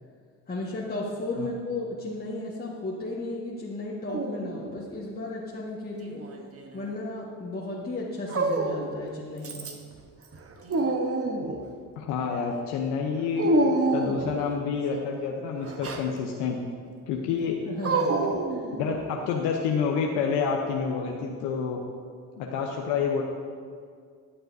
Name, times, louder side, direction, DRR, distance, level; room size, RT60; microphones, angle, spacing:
voice 1, 0.5-6.3 6.7-9.7 17.6-18.6, left 2 dB, 25° left, -5 dB, 1.5 m, -34 dB
Dog, 4.1-4.9 6.0-6.9 8.3-9.0 9.4-9.9 10.3-11.7 13.4-14.4 15.6-16.1 17.8-19.1, right 3 dB, 35° right, 1.0 m, -28 dB
voice 2, 12.0-13.5 13.9-16.6 17.1-17.6 18.8-21.8 22.4-23.2, left 6 dB, 80° left, 0 dB, 0.9 m, -28 dB
13.5 x 7.8 x 2.7 m, 2.1 s
hypercardioid pair, 60°, 40 cm